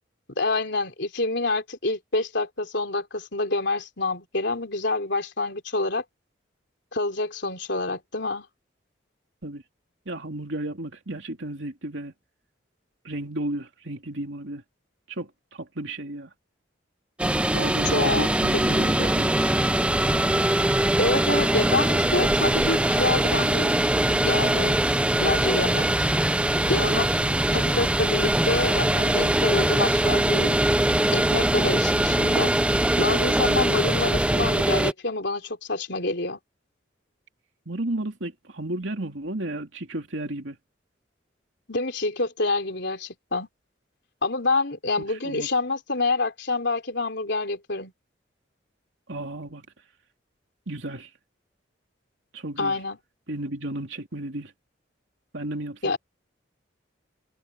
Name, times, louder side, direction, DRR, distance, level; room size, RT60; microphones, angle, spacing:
voice 1, 0.4-6.0 6.9-8.5 17.8-19.1 21.0-23.7 24.2-24.8 25.2-26.1 26.7-27.1 27.5-30.6 31.1-32.5 33.0-36.4 41.7-43.5 44.2-47.9 52.6-53.0 55.8-56.0, left 3 dB, 65° left, 3.5 m, -27 dB
voice 2, 10.1-12.1 13.0-14.6 15.1-16.3 17.5-19.3 37.7-40.6 45.1-45.5 49.1-49.7 50.7-51.1 52.3-52.8 53.3-54.5 55.3-56.0, right 1 dB, 70° right, 2.9 m, -33 dB
sound 1, 17.2-34.9, right 1 dB, 5° right, 0.5 m, -22 dB
head